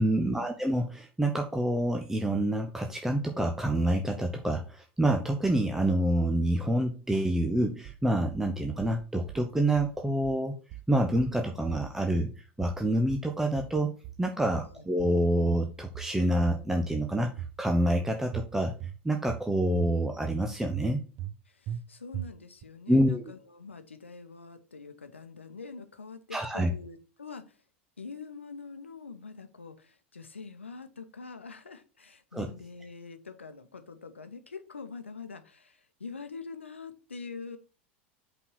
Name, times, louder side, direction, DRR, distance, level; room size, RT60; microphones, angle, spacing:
voice 1, 0.0-10.5 10.9-13.9 14.2-18.7 19.0-21.0 22.9-23.2 26.3-26.7 32.3-32.5, right 1 dB, 5° right, 3 dB, 0.8 m, -27 dB
sound 1, 7.8-8.5 8.8-9.4 9.8-10.4 10.7-11.4 11.7-12.3 12.6-13.3 13.6-14.3 14.5-15.2 15.5-16.2 16.4-17.1 17.4-18.0 18.3-19.0 19.3-19.9 20.2-20.3 20.7-21.4 21.7-21.8 22.1-22.6, right 11 dB, 45° right, 0.6 m, -40 dB
voice 2, 21.5-27.6 28.0-37.6, left 4 dB, 80° left, 9 dB, 0.9 m, -44 dB
5.6 x 4.2 x 6.2 m, 0.36 s
figure-of-eight pair, 80°, 6 cm